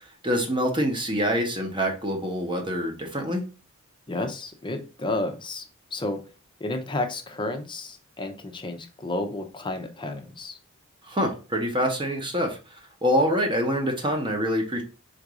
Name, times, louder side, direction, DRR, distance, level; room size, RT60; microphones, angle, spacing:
voice 1, 0.0-3.4 11.0-14.8, equal, 20° right, 2 dB, 0.9 m, -26 dB
voice 2, 4.1-5.6 5.9-6.2 6.6-10.6, left 2 dB, 20° left, 5 dB, 0.6 m, -31 dB
3.9 x 2.6 x 4.7 m, 0.34 s
head